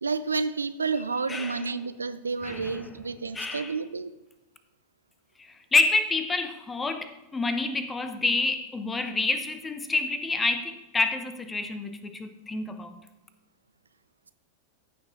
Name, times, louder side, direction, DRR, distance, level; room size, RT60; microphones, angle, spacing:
voice 1, 0.0-4.1, right 4 dB, 75° right, 13 dB, 0.5 m, -30 dB
voice 2, 1.3-1.6 2.4-2.8 3.3-3.7 5.4-13.0, left 3 dB, 15° left, 9 dB, 0.9 m, -28 dB
14.5 x 6.3 x 3.9 m, 0.99 s
figure-of-eight pair, 90°, 0 cm